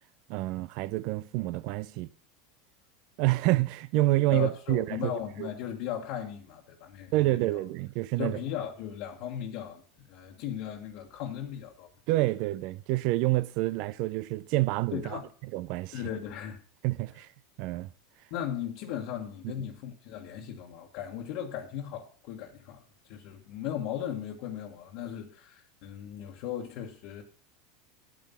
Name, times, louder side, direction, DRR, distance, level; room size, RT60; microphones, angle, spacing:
voice 1, 0.3-2.1 3.2-5.1 5.4-5.5 7.1-8.4 12.1-15.2 15.5-16.0 16.8-17.3 17.6-17.9, right 18 dB, 60° right, 0.6 m, -28 dB
voice 2, 4.3-7.6 8.2-11.9 14.9-15.3 15.9-16.6 18.3-27.2, left 10 dB, 60° left, 1.5 m, -37 dB
9.3 x 8.6 x 5.7 m
supercardioid pair, 110°, 0 cm